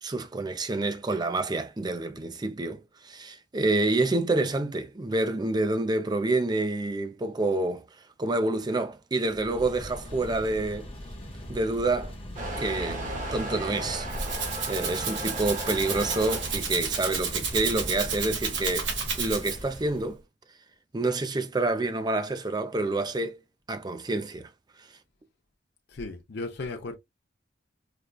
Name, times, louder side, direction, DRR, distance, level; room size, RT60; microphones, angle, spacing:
voice 1, 0.0-7.8 8.2-10.9 11.5-12.1 12.6-13.0 13.3-14.1 14.7-18.9 19.2-20.2 20.9-23.4 23.7-24.5 24.8-24.9, right 2 dB, 20° right, 0.4 m, -28 dB
sound 1, 9.3-20.1, equal, 30° left, 0.9 m, -41 dB
Motor vehicle (road) / Engine starting / Accelerating revving vroom, 12.4-18.2, right 1 dB, 40° right, 1.2 m, -36 dB
Rattle (instrument), 13.8-19.8, right 5 dB, 70° right, 1.2 m, -32 dB
voice 2, 25.9-26.9, left 2 dB, 60° left, 0.6 m, -35 dB
4.9 x 2.2 x 2.2 m
head